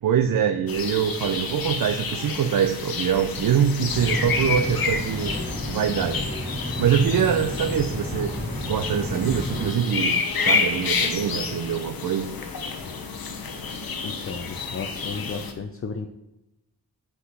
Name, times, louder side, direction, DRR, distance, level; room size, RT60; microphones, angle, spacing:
voice 1, 0.0-5.4 5.7-6.2 6.8-12.3, right 8 dB, 55° right, 8 dB, 0.5 m, -24 dB
sound 1, 0.7-15.5, left 5 dB, 60° left, 1.0 m, -29 dB
sound 2, 3.9-9.7, equal, 20° right, 2.1 m, -32 dB
voice 2, 14.0-16.1, left 5 dB, 35° left, 6 dB, 0.6 m, -34 dB
6.2 x 3.8 x 5.5 m, 0.91 s
cardioid pair, 55°, 40 cm